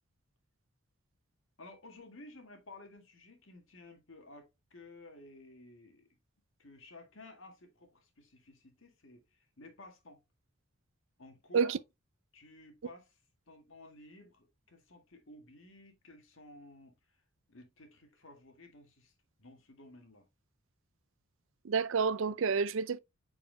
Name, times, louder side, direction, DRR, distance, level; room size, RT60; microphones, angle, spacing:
voice 1, 1.6-6.0 6.6-10.2 11.2-11.8 12.3-13.2 13.5-16.9 17.5-19.1 19.4-20.2, left 2 dB, 65° left, 1.9 m, -54 dB
voice 2, 21.6-23.0, right 5 dB, 60° right, 0.4 m, -29 dB
9.1 x 4.7 x 2.2 m
head